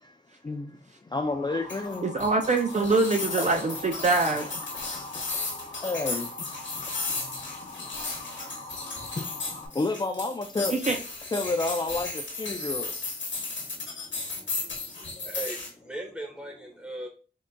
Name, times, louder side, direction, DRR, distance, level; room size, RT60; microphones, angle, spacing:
voice 1, 0.4-0.8 1.0-2.1 3.4-3.6 4.7-6.5 6.8-10.8 11.3-12.9 15.0-15.1, left 2 dB, 25° left, 0.3 m, -32 dB
Motor vehicle (road) / Siren, 1.1-9.7, left 2 dB, 50° left, 0.7 m, -43 dB
sound 1, 1.7-15.7, left 3 dB, 90° left, 0.9 m, -35 dB
voice 2, 2.0-4.5 10.7-11.0, right 3 dB, 40° right, 0.4 m, -24 dB
voice 3, 14.1-17.1, right 1 dB, 5° right, 1.1 m, -40 dB
3.8 x 3.6 x 2.2 m
wide cardioid pair, 80°, 19 cm